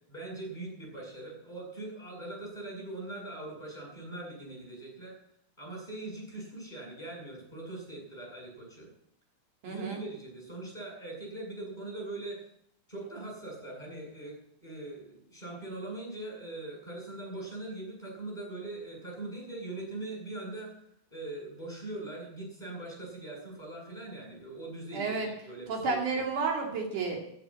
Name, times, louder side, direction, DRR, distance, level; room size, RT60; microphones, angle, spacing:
voice 1, 0.1-5.1 5.6-8.9 9.6-12.5 12.9-14.3 14.6-20.8 21.1-26.2, right 2 dB, 15° left, -2 dB, 7.4 m, -41 dB
voice 2, 9.6-10.0 24.9-25.3 25.7-27.2, right 4 dB, 80° right, 1 dB, 3.9 m, -31 dB
14.5 x 8.7 x 8.6 m, 0.72 s
omnidirectional pair, 3.5 m